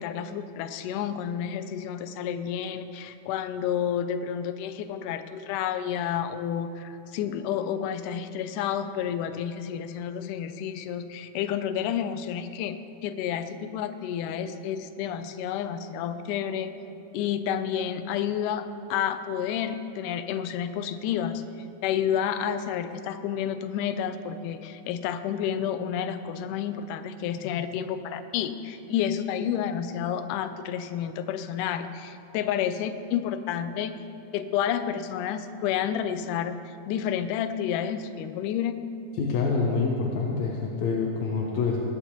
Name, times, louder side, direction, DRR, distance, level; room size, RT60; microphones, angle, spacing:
voice 1, 0.0-16.7 17.1-18.7 18.9-21.4 21.8-33.9 34.3-36.6 36.9-38.8, left 9 dB, 85° left, 10 dB, 2.1 m, -30 dB
voice 2, 39.1-41.8, left 4 dB, 70° left, -2 dB, 2.0 m, -26 dB
20.0 x 8.1 x 3.0 m, 2.9 s
omnidirectional pair, 3.6 m